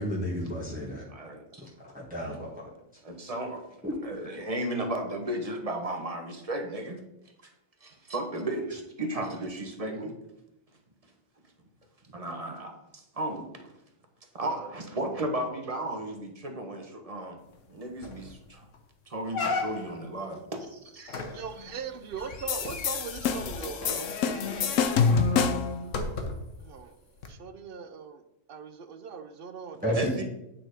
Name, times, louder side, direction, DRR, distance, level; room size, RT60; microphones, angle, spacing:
voice 1, 0.0-1.0 1.8-2.7 3.8-3.9 29.8-30.1, equal, 5° right, -5 dB, 1.5 m, -31 dB
voice 2, 1.1-1.7 3.0-3.7 4.0-7.0 7.4-7.5 7.8-10.1 12.1-13.7 14.3-17.4 17.7-18.7 19.1-21.4 24.2-24.6 29.9-30.3, right 1 dB, 30° right, 4 dB, 1.1 m, -34 dB
sound 1, 17.6-17.7 18.0-18.3 18.7-18.8 19.3-20.1 21.1-26.6 27.2-27.3, left 3 dB, 75° left, 1.3 m, -35 dB
voice 3, 21.3-24.8 25.6-26.0 26.6-27.0 27.3-28.2 28.5-30.0, right 6 dB, 55° right, 9 dB, 0.7 m, -40 dB
sound 2, 22.5-25.8, left 6 dB, 90° left, 1.1 m, -27 dB
9.0 x 4.3 x 5.0 m, 0.85 s
omnidirectional pair, 1.3 m